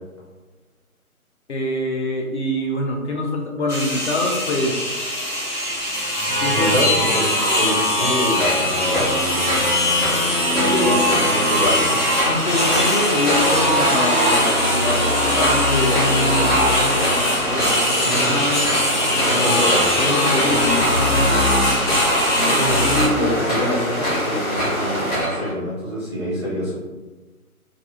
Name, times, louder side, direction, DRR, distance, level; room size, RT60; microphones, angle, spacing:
voice 1, 1.5-4.8 6.3-6.8 10.7-11.0 12.3-18.7 19.1-21.0, left 1 dB, 50° left, 0 dB, 0.4 m, -25 dB
sound 1, 3.7-23.1, left 1 dB, 85° left, 1.1 m, -20 dB
voice 2, 6.5-9.1 10.5-12.0 18.0-18.4 19.2-19.8 22.4-26.8, equal, 20° right, -10 dB, 0.5 m, -25 dB
sound 2, 8.3-25.5, equal, 25° left, 0.9 m, -27 dB
sound 3, 12.4-25.2, equal, 70° left, 1.3 m, -27 dB
2.4 x 2.3 x 2.5 m, 1.2 s
figure-of-eight pair, 145°, 44 cm